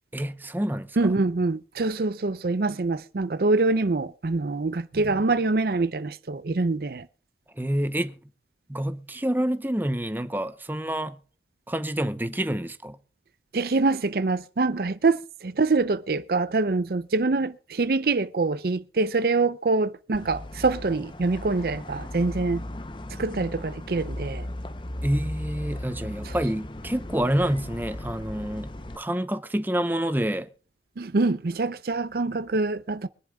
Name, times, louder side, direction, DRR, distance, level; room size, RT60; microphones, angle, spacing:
voice 1, 0.1-1.1 7.6-8.2 8.7-11.2 11.7-13.0 25.0-30.5, right 1 dB, 10° right, 0.7 m, -28 dB
voice 2, 1.0-7.0 13.5-22.6 23.2-24.4 31.0-33.1, right 3 dB, 55° right, 0.5 m, -25 dB
sound 1, 20.1-29.0, left 1 dB, 25° left, 0.7 m, -36 dB
24.0 x 11.0 x 2.3 m
head